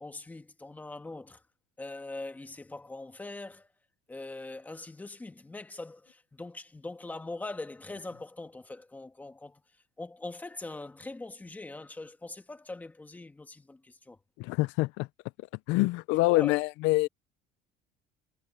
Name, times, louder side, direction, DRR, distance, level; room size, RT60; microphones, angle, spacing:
voice 1, 0.0-1.4 1.8-3.7 4.1-9.6 10.0-14.2 16.3-16.6, left 2 dB, 10° left, 1.4 m, -42 dB
voice 2, 14.4-15.1 15.7-17.1, left 21 dB, 75° left, 0.4 m, -25 dB
cardioid pair, 165°, 20 cm